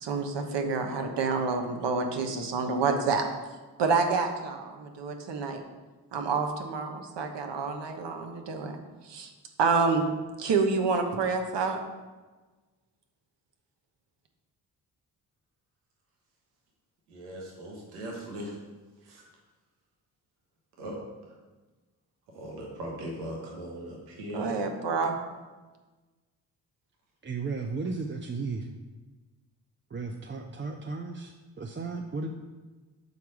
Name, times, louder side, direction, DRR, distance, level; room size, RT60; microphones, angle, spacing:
voice 1, 0.0-3.2 3.8-5.6 6.1-8.7 9.0-9.3 9.6-10.1 10.4-11.8 24.3-25.2, right 4 dB, 60° right, 5 dB, 1.2 m, -28 dB
voice 2, 17.1-18.6 19.0-19.2 20.8-21.0 22.3-24.5, equal, 90° right, -2 dB, 1.3 m, -39 dB
voice 3, 27.2-28.7 29.9-32.3, right 4 dB, 25° right, 4 dB, 0.6 m, -34 dB
7.0 x 4.6 x 4.9 m, 1.3 s
hypercardioid pair, 45°, 47 cm